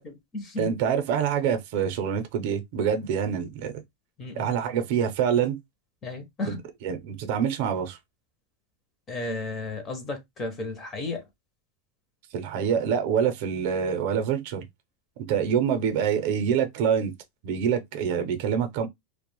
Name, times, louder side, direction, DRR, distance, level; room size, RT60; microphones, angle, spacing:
voice 1, 0.0-0.8 4.2-4.5 6.0-6.6 9.1-11.2, left 2 dB, 20° left, 0.4 m, -34 dB
voice 2, 0.6-3.7 4.4-5.6 6.5-6.6 6.8-8.0 12.3-14.6 15.2-17.1 17.4-18.9, right 8 dB, 50° right, 0.5 m, -26 dB
2.4 x 2.0 x 2.9 m
supercardioid pair, 175°, 0 cm